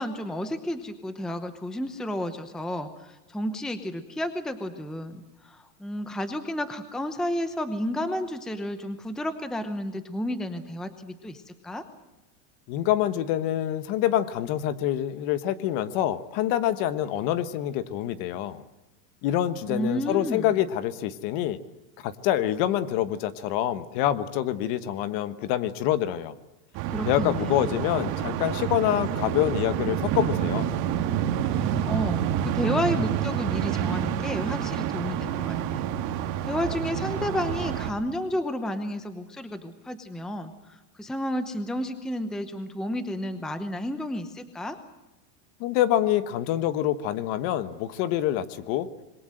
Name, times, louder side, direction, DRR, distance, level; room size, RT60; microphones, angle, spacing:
voice 1, 0.0-11.8 19.7-20.5 26.9-27.8 31.5-35.8 36.5-44.8, left 1 dB, ahead, 10 dB, 0.8 m, -31 dB
voice 2, 12.7-18.6 19.2-21.6 22.0-26.3 27.0-30.7 45.6-48.9, left 12 dB, 40° left, 14 dB, 1.3 m, -26 dB
sound 1, 26.7-37.9, right 10 dB, 40° right, 2.1 m, -28 dB
26.5 x 22.0 x 7.8 m, 1.0 s
supercardioid pair, 160°, 50 cm